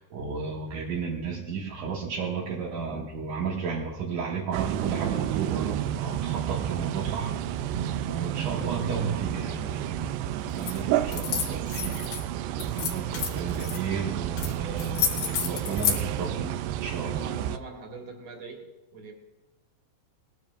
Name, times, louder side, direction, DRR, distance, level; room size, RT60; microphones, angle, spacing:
voice 1, 0.0-7.3 8.0-10.1 10.4-12.0 12.6-17.3, right 5 dB, 65° right, -3 dB, 2.1 m, -33 dB
sound 1, 4.5-17.6, right 11 dB, 85° right, 2.4 m, -31 dB
sound 2, 10.6-10.8 11.1-12.2 12.6-13.8 14.4-14.5 14.8-16.0, left 8 dB, 70° left, 3.5 m, -29 dB
voice 2, 10.7-11.3 15.4-16.1 17.0-19.1, right 3 dB, 45° right, 2 dB, 2.9 m, -44 dB
19.5 x 12.5 x 2.5 m, 1.1 s
omnidirectional pair, 5.2 m